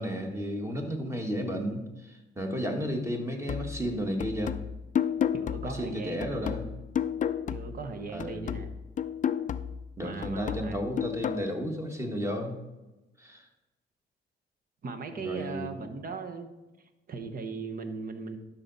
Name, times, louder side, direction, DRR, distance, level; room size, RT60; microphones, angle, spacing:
voice 1, 0.0-4.6 5.6-6.7 8.1-8.4 10.0-12.6 13.2-13.5 15.2-15.7, equal, 15° right, 3 dB, 1.6 m, -33 dB
sound 1, 3.5-7.9 8.2-11.5, left 8 dB, 40° left, 0.4 m, -32 dB
voice 2, 5.3-6.2 7.5-8.7 10.0-10.8 14.8-16.5 17.1-18.4, right 4 dB, 45° right, 7 dB, 1.2 m, -38 dB
12.0 x 5.8 x 4.1 m, 1.1 s
cardioid pair, 90°, 20 cm